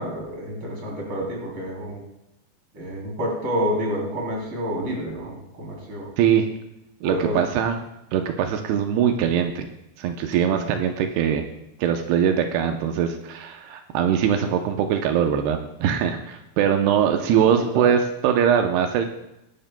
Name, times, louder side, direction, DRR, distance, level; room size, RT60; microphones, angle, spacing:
voice 1, 0.0-2.0 2.7-6.1 7.0-7.4 10.5-10.7 17.0-17.9, equal, 30° right, -2 dB, 3.4 m, -29 dB
voice 2, 7.0-7.8 8.1-9.7 10.0-11.4 11.8-19.1, right 8 dB, 90° right, 5 dB, 2.2 m, -22 dB
21.0 x 11.0 x 2.2 m, 0.88 s
omnidirectional pair, 5.7 m